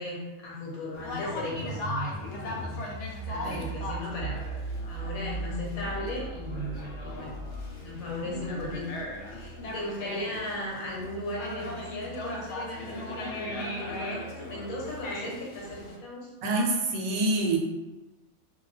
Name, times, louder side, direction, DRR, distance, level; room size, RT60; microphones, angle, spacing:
voice 1, 0.0-2.9 3.2-4.4 4.9-7.4 7.8-8.8 9.3-16.3, left 1 dB, 85° left, -4 dB, 1.3 m, -36 dB
Conversation, 0.9-16.0, left 1 dB, 65° left, 0.7 m, -39 dB
sound 1, 1.2-9.9, right 3 dB, 45° right, 0.8 m, -39 dB
voice 2, 16.4-17.6, right 2 dB, 85° right, 1 dB, 1.1 m, -27 dB
2.5 x 2.2 x 3.2 m, 1.1 s
omnidirectional pair, 1.5 m